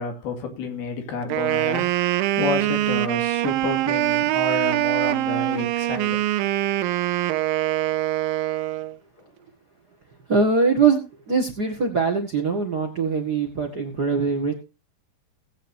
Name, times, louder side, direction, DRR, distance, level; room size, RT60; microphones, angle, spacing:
voice 1, 0.0-6.2, left 5 dB, 85° left, 4.2 m, -30 dB
Wind instrument woodwind instrument, 1.2-9.0, right 15 dB, 75° right, 2.4 m, -23 dB
voice 2, 10.3-11.0 11.3-14.5, right 5 dB, 40° right, 1.5 m, -22 dB
19.0 x 9.0 x 2.8 m
omnidirectional pair, 4.3 m